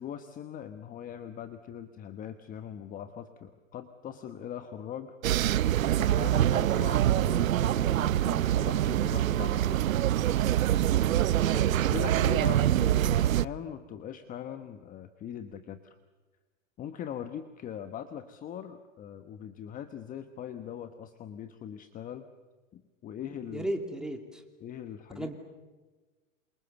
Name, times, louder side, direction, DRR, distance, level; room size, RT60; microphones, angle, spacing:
voice 1, 0.0-5.1 6.0-9.8 11.5-15.9 16.8-22.3 22.7-23.7 24.6-25.3, left 9 dB, 20° left, 9 dB, 1.2 m, -41 dB
sound 1, 5.2-13.5, right 12 dB, 85° right, 0.8 m, -25 dB
voice 2, 23.5-24.4 25.1-25.3, right 1 dB, ahead, 4 dB, 2.7 m, -34 dB
27.5 x 27.5 x 7.1 m, 1.3 s
hypercardioid pair, 135°, 39 cm